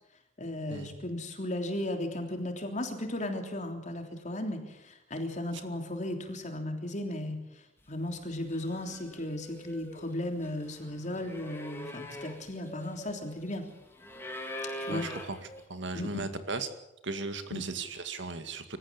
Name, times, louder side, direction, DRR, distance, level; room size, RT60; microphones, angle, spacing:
voice 1, 0.4-7.4 7.9-13.6 14.8-15.1 15.9-16.2 17.5-17.6, left 1 dB, 40° left, 4 dB, 3.4 m, -35 dB
sound 1, 8.1-8.3 8.5-15.7, equal, 10° left, 2.8 m, -43 dB
voice 2, 14.9-15.4 15.7-16.7 17.0-18.8, right 3 dB, 65° right, 9 dB, 2.1 m, -36 dB
25.5 x 14.5 x 8.7 m, 0.88 s
head